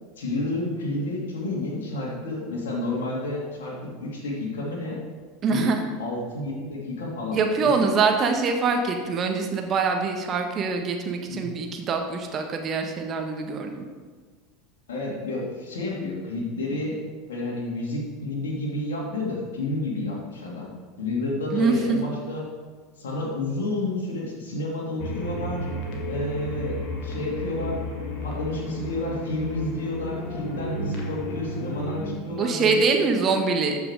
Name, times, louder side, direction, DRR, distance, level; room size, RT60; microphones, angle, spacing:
voice 1, 0.2-5.0 5.5-5.7 6.0-8.0 11.3-11.5 14.9-17.0 17.3-22.4 23.0-25.7 26.1-27.8 28.2-32.8, left 2 dB, 70° left, -4 dB, 2.9 m, -30 dB
voice 2, 5.4-5.8 7.3-13.8 21.5-22.0 32.3-33.8, right 4 dB, 35° right, 4 dB, 1.5 m, -24 dB
sound 1, 25.0-32.1, equal, 50° left, 2.4 m, -32 dB
13.5 x 6.0 x 4.9 m, 1.5 s
figure-of-eight pair, 80°, 0 cm